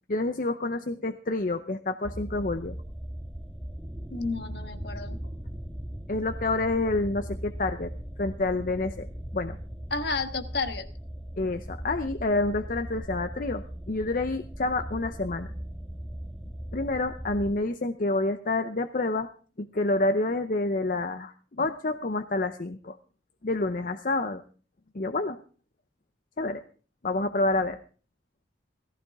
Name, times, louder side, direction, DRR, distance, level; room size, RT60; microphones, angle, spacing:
voice 1, 0.1-2.8 6.1-7.9 8.2-9.1 9.3-9.6 11.4-15.5 16.7-19.3 19.6-23.0 23.4-24.4 24.9-25.4 26.4-26.6 27.0-27.8, left 2 dB, 50° left, 8 dB, 0.7 m, -28 dB
sound 1, 2.0-17.5, equal, ahead, 1.2 m, -39 dB
voice 2, 4.1-5.2 9.9-10.9, left 3 dB, 65° left, 8 dB, 1.4 m, -31 dB
17.0 x 15.0 x 3.6 m, 0.40 s
head